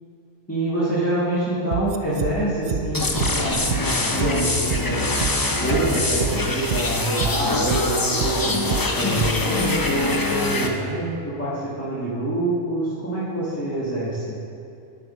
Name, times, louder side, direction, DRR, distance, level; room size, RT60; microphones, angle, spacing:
voice 1, 0.5-3.6 4.1-5.0 5.6-8.5 9.0-10.1 10.4-14.4, right 1 dB, 10° left, -10 dB, 1.5 m, -26 dB
sound 1, 1.7-2.3 2.6-2.8 3.1-3.3 3.6-4.3 4.6-4.8 5.1-5.3 5.6-6.3 6.6-6.8 7.1-7.3 7.6-8.3 8.6-8.8 9.1-9.3 9.6-9.7, right 9 dB, 65° right, 0.5 m, -26 dB
sound 2, 2.9-10.7, left 2 dB, 30° left, 0.4 m, -24 dB
11.5 x 6.9 x 4.1 m, 2.6 s
omnidirectional pair, 1.4 m